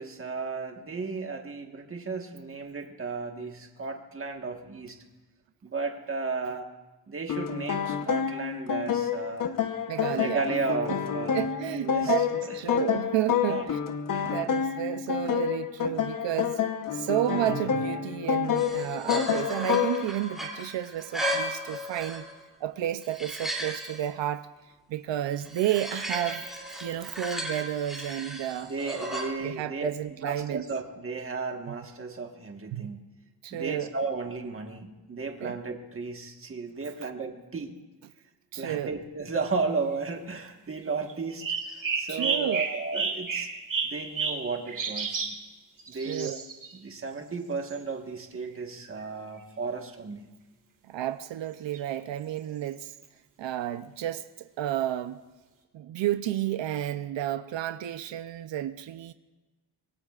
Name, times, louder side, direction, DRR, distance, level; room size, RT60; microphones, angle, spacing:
voice 1, 0.0-5.0 5.6-6.7 7.1-9.6 10.1-11.4 11.7-12.1 13.5-13.7 14.1-14.4 28.6-33.0 33.5-37.7 38.5-43.5 43.8-45.3 45.9-46.3 46.7-50.3, right 4 dB, 30° right, 1.5 m, -34 dB
sound 1, 7.3-20.1, left 8 dB, 50° left, 1.0 m, -28 dB
voice 2, 9.9-10.5 11.3-13.8 14.2-16.6 16.9-22.2 22.6-24.5 24.9-26.5 26.8-28.7 29.4-30.6 32.7-32.9 33.4-33.9 35.4-35.6 38.5-38.9 42.1-42.6 46.1-46.4 50.9-52.9 53.4-55.2 55.7-59.1, right 12 dB, 85° right, 0.7 m, -31 dB
sound 2, 18.6-22.4 22.8-24.0 25.4-29.3, equal, ahead, 3.0 m, -35 dB
sound 3, 41.1-45.4 45.8-46.7 47.7-47.8 48.4-48.5 48.8-49.1 51.7-51.8 52.8-53.0, right 5 dB, 50° right, 2.4 m, -32 dB
25.5 x 22.5 x 2.5 m
wide cardioid pair, 155°, 43 cm